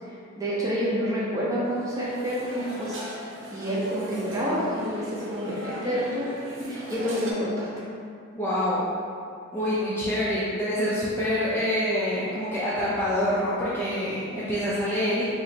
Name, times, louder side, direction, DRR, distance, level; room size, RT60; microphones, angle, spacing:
voice 1, 0.4-3.0 3.5-6.3 6.6-7.7, equal, 15° right, -8 dB, 0.7 m, -28 dB
sound 1, 1.7-7.3, right 1 dB, 60° right, 0.6 m, -40 dB
voice 2, 8.3-8.8 9.5-15.3, equal, 10° left, -10 dB, 0.4 m, -26 dB
2.9 x 2.6 x 4.2 m, 2.4 s
head